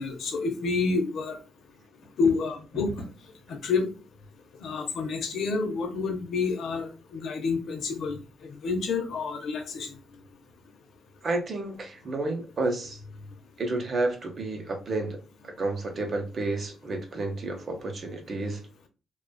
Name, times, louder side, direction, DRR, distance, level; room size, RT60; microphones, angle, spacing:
voice 1, 0.0-1.4 2.2-2.9 3.5-3.9 4.6-9.9, left 4 dB, 70° left, 4 dB, 0.6 m, -29 dB
sound 1, 2.0-3.4, equal, 90° left, 0.9 m, -39 dB
voice 2, 11.2-13.0 13.6-15.2 15.6-18.6, right 2 dB, 50° right, 3 dB, 0.8 m, -30 dB
2.4 x 2.3 x 2.2 m, 0.33 s
hypercardioid pair, 45°, 0 cm